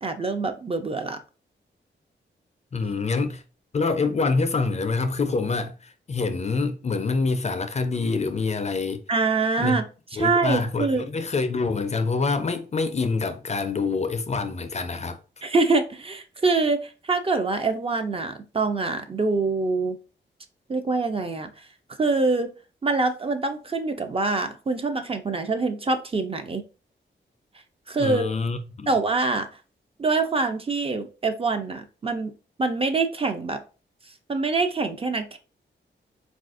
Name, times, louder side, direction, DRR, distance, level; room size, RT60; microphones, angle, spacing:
voice 1, 0.0-1.2 9.1-11.1 15.4-20.0 20.7-21.5 22.0-22.5 22.8-26.6 27.9-28.3 28.9-29.5 30.0-32.3 32.6-33.6 34.3-35.4, right 3 dB, 30° right, 0.4 m, -25 dB
voice 2, 2.7-3.4 3.7-9.0 9.6-9.8 10.1-15.2 28.0-29.0, left 4 dB, 35° left, 0.4 m, -26 dB
4.0 x 2.4 x 2.4 m
wide cardioid pair, 95°, 19 cm